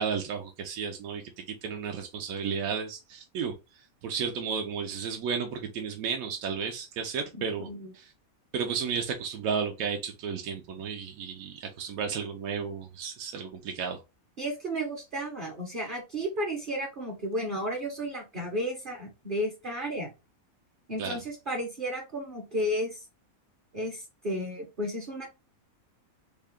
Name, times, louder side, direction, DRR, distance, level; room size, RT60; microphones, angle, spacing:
voice 1, 0.0-7.7 7.9-8.1 8.5-14.0 21.0-21.2, right 6 dB, 80° right, 1.0 m, -33 dB
voice 2, 14.4-20.1 20.9-23.0 23.7-25.3, equal, 45° right, 0.9 m, -33 dB
3.5 x 2.2 x 3.5 m
omnidirectional pair, 1.5 m